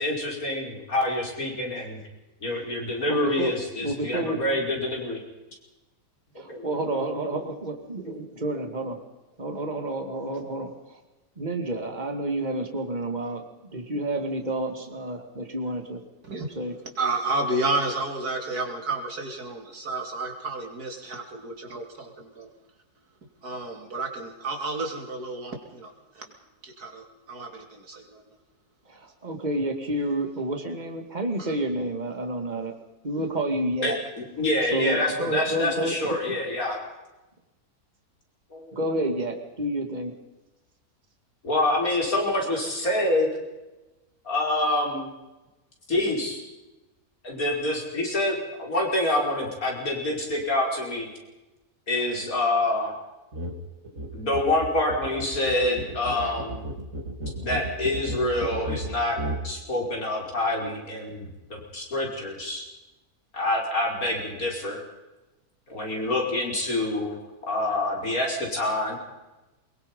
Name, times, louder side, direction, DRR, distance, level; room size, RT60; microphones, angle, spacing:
voice 1, 0.0-2.0 2.4-5.2 6.5-7.4 33.8-36.8 38.5-38.8 41.4-43.3 44.3-45.1 45.9-46.4 47.2-51.1 51.9-52.9 53.9-56.6 57.4-59.2 59.4-62.7 63.3-64.8 65.7-67.1 67.5-69.0, left 1 dB, 65° left, 0 dB, 5.5 m, -27 dB
voice 2, 3.1-3.5 3.8-4.4 6.6-9.0 9.4-11.0 11.4-13.4 13.7-16.0 16.6-16.8 28.9-32.7 33.0-34.0 34.7-35.9 36.3-36.4 38.7-40.1, right 1 dB, 30° right, 5 dB, 2.4 m, -29 dB
voice 3, 17.0-22.5 23.4-26.3 26.6-28.2 31.4-31.5, right 2 dB, 85° right, 3 dB, 3.6 m, -31 dB
sound 1, 53.3-53.6 53.8-59.5, right 1 dB, 55° right, 3.0 m, -34 dB
23.0 x 22.0 x 5.4 m, 1.0 s
omnidirectional pair, 1.6 m